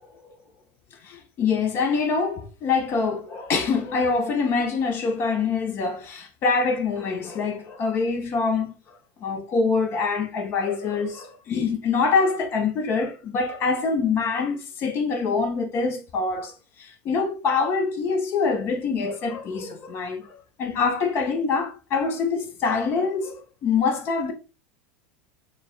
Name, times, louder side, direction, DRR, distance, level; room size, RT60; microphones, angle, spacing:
voice 1, 1.0-24.3, left 4 dB, 40° left, 0.7 m, -25 dB
6.5 x 2.3 x 2.3 m
figure-of-eight pair, 80°, 6 cm